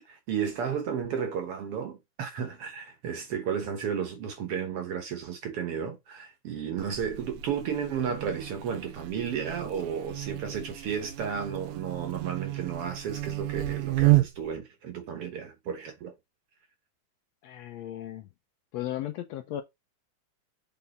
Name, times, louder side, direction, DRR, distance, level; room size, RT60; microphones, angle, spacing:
voice 1, 0.1-16.1, right 7 dB, 60° right, 1.8 m, -33 dB
Buzz, 6.8-14.6, right 19 dB, 80° right, 2.1 m, -31 dB
voice 2, 17.4-18.3 18.7-19.6, left 12 dB, 85° left, 1.5 m, -35 dB
6.6 x 3.9 x 4.2 m
omnidirectional pair, 3.7 m